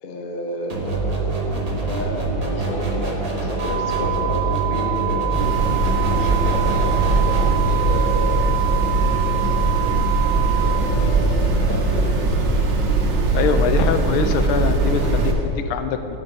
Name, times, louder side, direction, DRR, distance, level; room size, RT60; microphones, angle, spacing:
voice 1, 0.0-1.4 1.9-5.4 6.0-8.5 9.2-9.6 10.6-12.7, left 2 dB, 65° left, 2 dB, 0.5 m, -31 dB
sound 1, 0.7-7.6, right 2 dB, 30° right, 0.6 m, -25 dB
sound 2, 3.6-10.8, right 17 dB, 80° right, 1.7 m, -26 dB
sound 3, 5.3-15.3, right 3 dB, 60° right, 1.6 m, -20 dB
voice 2, 13.3-16.2, left 6 dB, 90° left, 8 dB, 1.5 m, -23 dB
10.5 x 5.4 x 5.4 m, 3.0 s
omnidirectional pair, 2.3 m